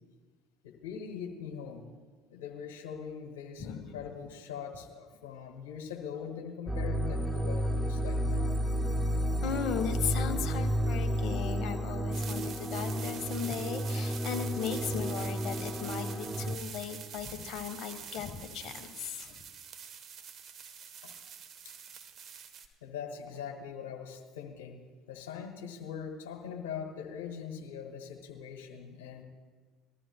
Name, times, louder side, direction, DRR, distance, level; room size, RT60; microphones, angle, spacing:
voice 1, 0.6-1.9 2.3-8.5 21.0-21.1 22.8-24.8 25.1-29.2, left 7 dB, 80° left, 3 dB, 1.7 m, -42 dB
voice 2, 3.6-4.0 9.4-19.4, left 8 dB, 55° left, 6 dB, 1.4 m, -37 dB
sound 1, 6.7-16.6, equal, 5° right, 0.9 m, -32 dB
sound 2, 12.1-22.7, right 7 dB, 50° right, 1.2 m, -46 dB
20.5 x 13.0 x 2.3 m, 1.4 s
hypercardioid pair, 65°, 0 cm